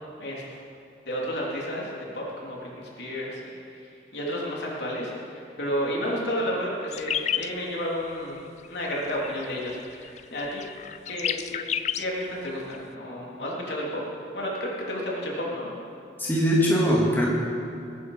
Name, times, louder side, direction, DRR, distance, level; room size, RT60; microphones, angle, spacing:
voice 1, 0.2-0.6 1.1-3.4 3.8-8.4 8.7-10.6 11.1-11.6 12.0-14.0 14.3-15.7, equal, 70° left, -4 dB, 3.6 m, -31 dB
sound 1, 6.9-7.5 8.1-8.4 8.6-9.0 9.2-9.4 9.7-12.8, left 9 dB, 40° left, 0.3 m, -31 dB
voice 2, 16.2-17.3, equal, 10° left, -5 dB, 2.2 m, -21 dB
21.0 x 11.0 x 5.2 m, 2.5 s
head